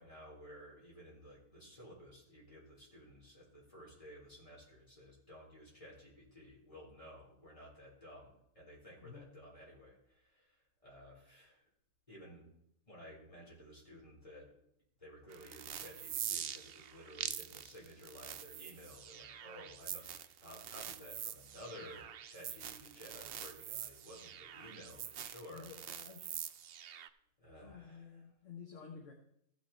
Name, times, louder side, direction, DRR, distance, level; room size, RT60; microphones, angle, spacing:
voice 1, 0.0-11.7 12.1-12.4 12.9-14.5 15.0-25.7 27.4-28.3, equal, 20° left, -5 dB, 4.2 m, -54 dB
sound 1, 15.3-27.1, right 9 dB, 90° right, 0.5 m, -45 dB
voice 2, 25.5-26.4 27.6-29.1, left 6 dB, 55° left, 2 dB, 1.5 m, -52 dB
15.0 x 6.1 x 4.3 m, 0.74 s
omnidirectional pair, 1.6 m